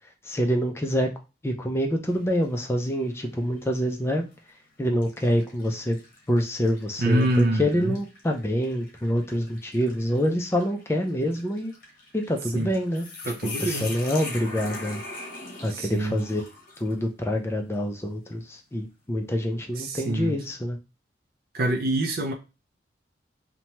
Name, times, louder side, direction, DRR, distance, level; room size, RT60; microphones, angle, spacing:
voice 1, 0.2-1.1 1.4-4.2 4.8-6.0 6.3-11.7 12.1-13.1 13.4-15.0 15.6-16.4 16.8-20.8, equal, 15° left, 0.4 m, -26 dB
sound 1, 2.1-2.6 3.1-3.2 4.2-4.4 5.0-17.0, left 3 dB, 50° left, 0.8 m, -42 dB
voice 2, 7.0-7.9 12.5-12.7 13.3-13.9 15.7-16.2 19.8-20.3 21.5-22.3, right 1 dB, 55° right, 0.4 m, -25 dB
2.8 x 2.2 x 2.9 m
head